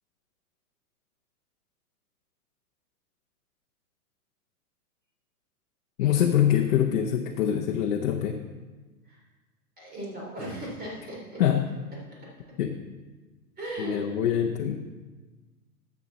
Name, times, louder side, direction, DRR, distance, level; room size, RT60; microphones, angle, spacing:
voice 1, 6.0-8.4 11.4-11.7 12.6-12.8 13.8-14.8, left 10 dB, 60° left, 2 dB, 0.9 m, -24 dB
voice 2, 9.8-11.4 13.6-14.0, right 1 dB, 20° right, -3 dB, 3.7 m, -37 dB
12.0 x 7.5 x 4.1 m, 1.3 s
hypercardioid pair, 120°, 45 cm